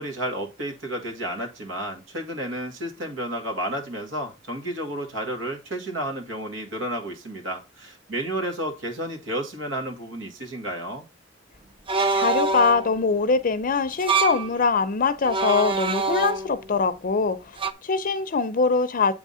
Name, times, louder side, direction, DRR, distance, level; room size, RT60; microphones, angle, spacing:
voice 1, 0.0-11.1, right 1 dB, 90° right, 1.9 m, -31 dB
sound 1, 11.9-12.9 13.9-14.5 15.2-16.7 17.6-17.7, right 4 dB, 25° right, 0.5 m, -25 dB
voice 2, 12.1-19.1, left 4 dB, 45° left, 0.5 m, -23 dB
8.1 x 3.6 x 5.4 m
head